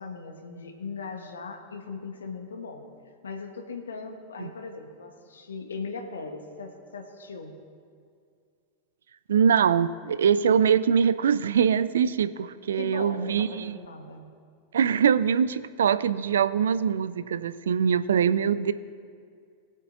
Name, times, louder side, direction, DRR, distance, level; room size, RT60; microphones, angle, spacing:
voice 1, 0.0-2.9 3.2-7.5 12.7-14.2, left 4 dB, 70° left, 5 dB, 1.2 m, -38 dB
voice 2, 9.3-13.8 14.7-18.7, right 7 dB, 65° right, 14 dB, 0.4 m, -23 dB
19.5 x 8.3 x 2.6 m, 2.2 s
figure-of-eight pair, 90°, 0 cm